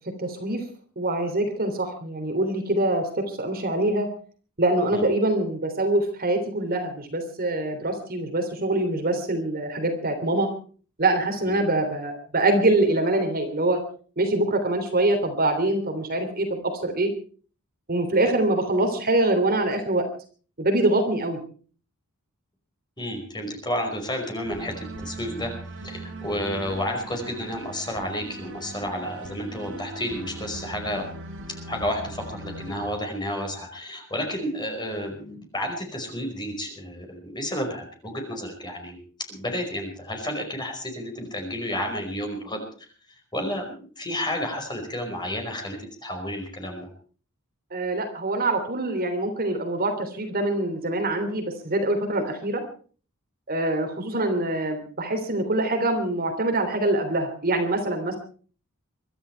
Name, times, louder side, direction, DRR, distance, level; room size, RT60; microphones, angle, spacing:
voice 1, 0.2-0.6 1.0-4.1 4.6-10.5 11.0-13.8 14.2-17.1 17.9-20.1 20.6-21.4 47.7-52.6 53.5-58.2, right 2 dB, 45° right, 5 dB, 3.3 m, -24 dB
voice 2, 23.0-25.5 25.8-31.1 31.7-39.0 39.3-42.9 43.3-46.9, equal, 20° left, 3 dB, 5.1 m, -31 dB
sound 1, 24.4-32.9, right 2 dB, 60° right, 5.2 m, -39 dB
24.0 x 12.5 x 4.6 m, 0.41 s
head